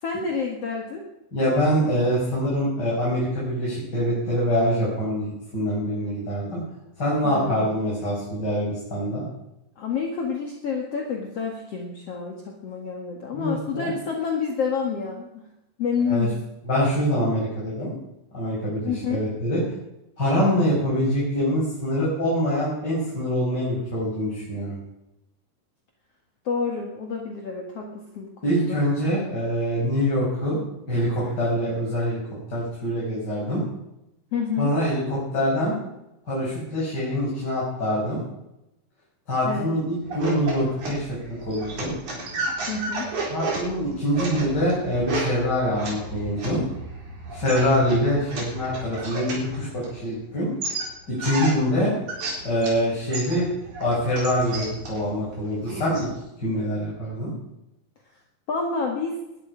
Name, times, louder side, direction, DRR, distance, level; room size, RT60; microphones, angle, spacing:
voice 1, 0.0-1.0 7.2-7.8 9.8-15.4 15.8-16.4 18.8-19.2 26.5-28.8 31.2-31.3 34.3-34.7 39.4-39.7 42.7-43.1 58.5-59.2, left 5 dB, 50° left, 1 dB, 2.5 m, -29 dB
voice 2, 1.3-6.6 7.0-9.2 13.3-13.9 16.1-16.3 16.6-17.9 18.3-19.6 20.2-24.8 28.4-30.6 30.9-32.2 32.5-33.6 34.6-35.8 36.3-38.2 39.3-41.9 43.3-46.6 47.3-50.5 51.1-51.9 52.4-53.5 53.8-56.1 56.4-57.3, equal, 30° left, -7 dB, 6.5 m, -24 dB
sound 1, 40.0-50.2 50.6-52.8 53.1-56.1, right 2 dB, 60° right, 5.5 m, -33 dB
19.5 x 12.0 x 5.1 m, 0.88 s
omnidirectional pair, 4.0 m